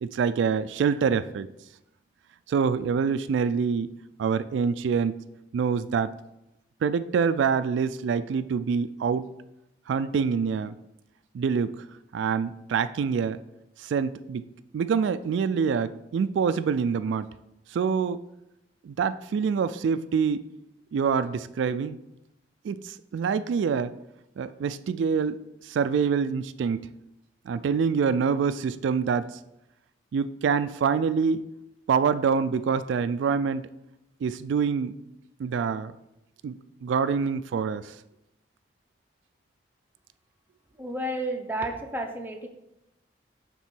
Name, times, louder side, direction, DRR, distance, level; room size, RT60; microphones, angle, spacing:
voice 1, 0.0-1.5 2.5-3.9 4.2-5.2 5.5-6.1 6.8-9.3 9.9-10.7 11.3-11.8 12.1-13.4 13.8-14.5 14.7-17.3 17.7-18.2 18.8-20.4 20.9-22.0 22.6-23.9 24.4-25.4 25.7-26.9 27.5-29.4 30.1-31.4 31.9-33.7 34.2-34.9 35.4-35.9 36.4-37.9, right 6 dB, 85° right, 13 dB, 0.3 m, -26 dB
voice 2, 40.8-42.5, right 1 dB, 10° right, 3 dB, 0.6 m, -31 dB
7.2 x 3.7 x 6.0 m, 0.88 s
head